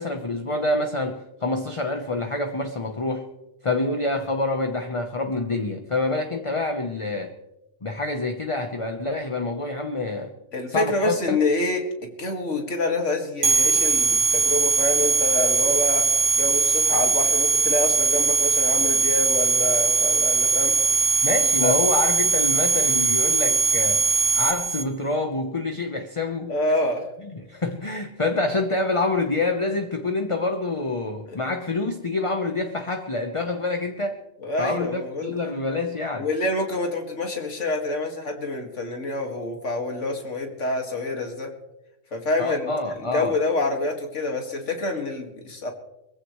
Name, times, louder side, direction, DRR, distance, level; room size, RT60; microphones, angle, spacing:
voice 1, 0.0-3.3 3.6-7.3 7.8-10.3 10.7-11.4 21.2-24.0 24.3-26.5 27.5-34.2 34.6-36.3 42.4-43.3, left 2 dB, 25° left, 5 dB, 1.0 m, -26 dB
voice 2, 10.5-16.1 16.4-20.7 21.6-21.7 26.5-27.1 31.3-31.4 34.4-35.4 36.2-41.5 42.1-42.7 43.0-45.7, left 2 dB, 70° left, 3 dB, 2.4 m, -27 dB
sound 1, 13.4-24.8, right 5 dB, 75° right, 1.5 m, -20 dB
22.5 x 15.5 x 3.2 m, 0.93 s
omnidirectional pair, 1.3 m